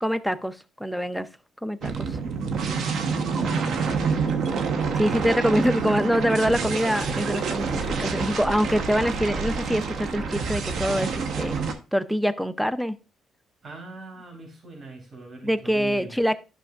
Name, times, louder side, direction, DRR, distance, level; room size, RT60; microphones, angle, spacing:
voice 1, 0.0-1.3 1.6-2.2 5.0-11.6 11.9-13.0 15.4-16.3, equal, ahead, 0.5 m, -25 dB
sound 1, 1.8-11.7, right 5 dB, 70° right, 1.0 m, -27 dB
voice 2, 2.6-3.0 3.3-4.1 13.6-16.2, right 2 dB, 45° right, 3.5 m, -41 dB
11.5 x 6.1 x 2.4 m
cardioid pair, 90°, 0 cm